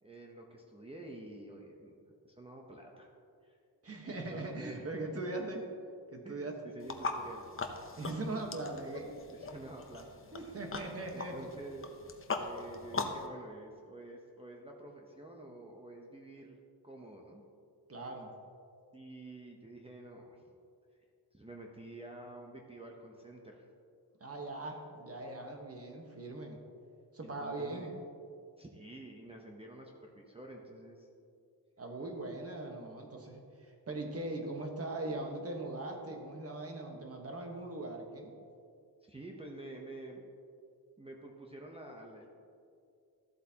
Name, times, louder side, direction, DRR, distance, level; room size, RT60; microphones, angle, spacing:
voice 1, 0.0-1.9 2.2-3.1 3.4-3.6 4.0-5.2 6.2-6.4 6.6-7.4 9.3-10.5 11.1-11.9 12.3-16.6 16.8-17.4 18.9-20.4 21.3-23.6 27.2-27.9 28.6-31.1 39.1-40.2 41.0-42.3, right 2 dB, 15° right, -1 dB, 0.7 m, -49 dB
voice 2, 3.8-5.6 6.1-6.6 8.0-9.2 10.3-11.5 17.9-18.3 24.2-26.6 27.1-27.9 31.8-38.3, right 2 dB, 35° right, 2 dB, 1.2 m, -40 dB
sound 1, 6.8-13.3, left 3 dB, 30° left, 0.7 m, -41 dB
13.5 x 8.0 x 2.9 m, 2.4 s
wide cardioid pair, 125°, 42 cm